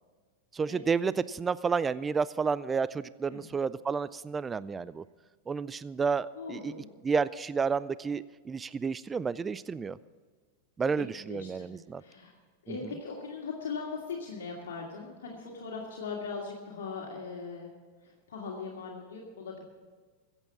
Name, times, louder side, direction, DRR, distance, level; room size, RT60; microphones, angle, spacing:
voice 1, 0.5-5.0 5.5-6.7 7.0-10.0 10.8-12.0 12.7-12.8, right 5 dB, 20° right, 18 dB, 0.4 m, -31 dB
voice 2, 6.3-6.9 11.3-12.3 12.6-17.7 18.0-19.6, left 5 dB, 75° left, -2 dB, 2.4 m, -40 dB
15.5 x 8.2 x 7.3 m, 1.5 s
hypercardioid pair, 100°, 0 cm